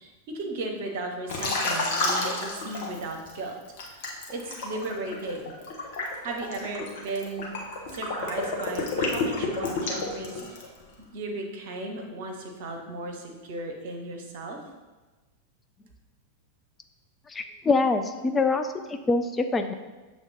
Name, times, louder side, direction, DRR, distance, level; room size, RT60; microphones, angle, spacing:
voice 1, 0.0-3.5 3.9-4.0 4.3-5.5 6.2-7.5 7.9-10.6 11.1-14.6, right 2 dB, 50° right, 2 dB, 0.9 m, -35 dB
Liquid, 1.3-3.3 3.8-10.8, left 3 dB, 50° left, 1.1 m, -30 dB
voice 2, 17.3-19.7, left 3 dB, 15° left, 7 dB, 0.4 m, -25 dB
7.1 x 3.5 x 4.0 m, 1.2 s
figure-of-eight pair, 90°, 0 cm